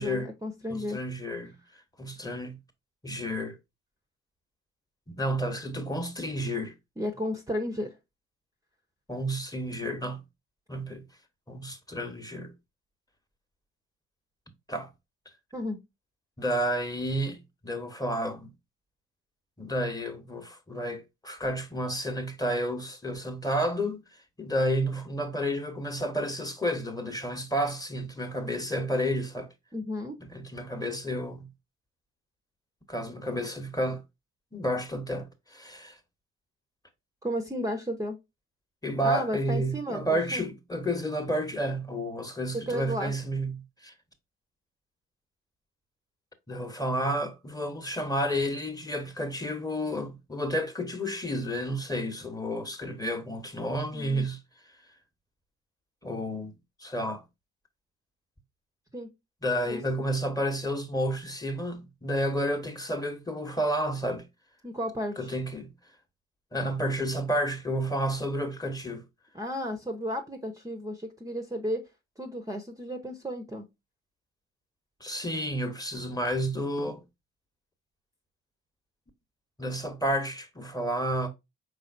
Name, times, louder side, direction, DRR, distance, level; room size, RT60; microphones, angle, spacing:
voice 1, 0.0-1.0 7.0-7.9 15.5-15.8 29.7-30.2 37.2-38.2 39.0-40.4 42.5-43.1 53.9-54.3 58.9-59.1 59.7-59.8 64.6-65.2 69.3-71.8 72.2-73.7, equal, 10° right, 0.8 m, -33 dB
voice 2, 0.7-1.6 2.0-2.6 3.0-3.6 5.1-6.7 9.1-10.2 10.7-11.0 11.5-12.5 14.7-14.9 16.4-18.5 19.6-24.0 24.4-29.5 30.2-31.5 32.9-34.0 34.5-36.0 38.8-43.9 46.5-54.4 56.0-57.2 59.4-64.2 65.2-65.7 66.5-69.0 75.0-77.0 79.6-81.3, equal, 10° left, 1.1 m, -31 dB
4.9 x 3.8 x 2.5 m
hypercardioid pair, 50°, 31 cm